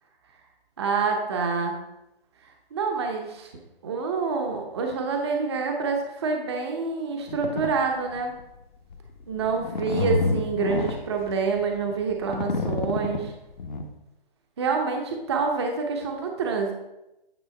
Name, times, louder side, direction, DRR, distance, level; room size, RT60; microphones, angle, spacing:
voice 1, 0.8-1.8 2.7-3.5 3.8-8.3 9.3-13.3 14.6-16.7, right 5 dB, 30° right, 2 dB, 0.8 m, -27 dB
sound 1, 7.3-7.7 8.2-8.4 8.9-13.9, left 3 dB, 50° left, 0.9 m, -28 dB
9.3 x 3.4 x 5.3 m, 0.92 s
hypercardioid pair, 160°, 29 cm